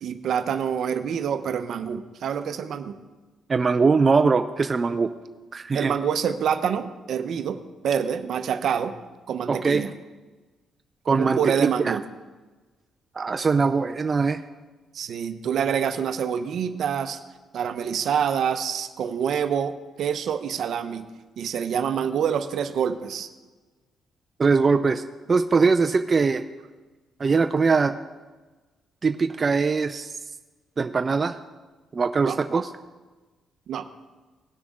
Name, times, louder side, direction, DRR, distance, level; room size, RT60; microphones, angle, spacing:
voice 1, 0.0-3.0 5.7-8.9 9.3-9.9 11.0-12.0 14.9-17.2 17.5-21.1 21.4-23.3 32.2-32.4 33.7-33.9, right 8 dB, 70° right, 9 dB, 0.8 m, -26 dB
voice 2, 3.5-5.1 5.5-5.9 9.5-9.9 11.1-11.5 11.8-12.0 13.2-14.4 24.4-25.0 25.3-26.4 27.2-27.9 29.0-30.1 30.8-31.4 31.9-32.7, right 4 dB, 35° right, 7 dB, 0.5 m, -21 dB
18.5 x 6.2 x 3.7 m, 1.3 s
cardioid pair, 85°, 0 cm